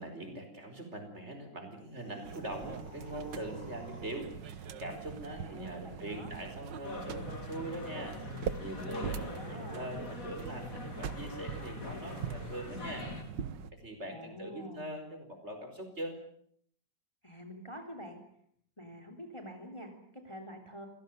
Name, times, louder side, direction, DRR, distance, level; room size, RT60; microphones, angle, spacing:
voice 1, 0.0-13.1 13.7-16.2, right 1 dB, 35° right, 6 dB, 5.1 m, -42 dB
sound 1, 1.7-4.4, left 1 dB, 85° left, 7.1 m, -55 dB
sound 2, 2.2-13.7, right 7 dB, 90° right, 1.9 m, -43 dB
voice 2, 5.3-6.3 9.0-9.9 14.1-14.9 17.2-18.2 18.8-20.9, equal, 15° left, 6 dB, 3.6 m, -46 dB
sound 3, 6.8-13.2, left 3 dB, 50° left, 3.5 m, -43 dB
27.5 x 17.5 x 9.2 m, 0.66 s
omnidirectional pair, 1.9 m